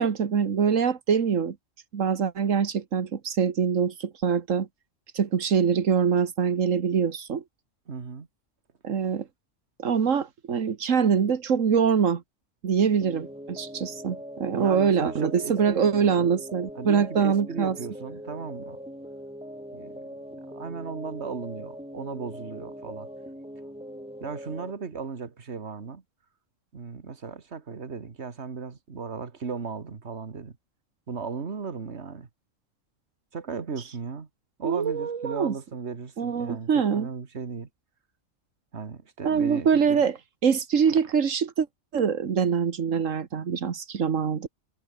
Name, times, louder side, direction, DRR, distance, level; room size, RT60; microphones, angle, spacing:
voice 1, 0.0-1.6 1.9-4.7 5.1-7.4 8.8-9.3 9.8-12.2 12.6-17.8 34.6-35.5 36.2-37.1 39.2-40.2 40.4-41.7 41.9-44.5, right 6 dB, 90° right, 1.8 m, -24 dB
voice 2, 7.9-8.3 14.5-16.3 16.7-18.8 19.7-19.9 20.5-23.1 24.2-26.0 26.7-30.6 31.1-32.3 33.3-34.3 34.6-37.7 38.7-40.0 40.8-41.1, right 5 dB, 60° right, 2.1 m, -36 dB
sound 1, 13.0-24.7, equal, 5° right, 7.5 m, -41 dB
omnidirectional pair, 1.3 m